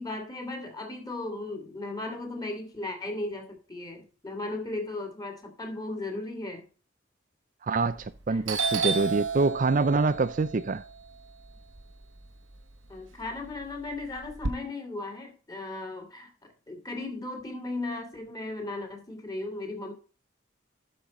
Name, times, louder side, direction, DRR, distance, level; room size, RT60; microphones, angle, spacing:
voice 1, 0.0-6.6 8.3-8.4 12.9-19.9, left 2 dB, 20° left, 2.5 m, -36 dB
voice 2, 7.6-10.8, right 3 dB, 40° right, 0.4 m, -25 dB
Doorbell, 7.9-8.2 8.5-12.6 13.0-14.5, right 5 dB, 80° right, 1.1 m, -32 dB
12.0 x 5.4 x 4.2 m
head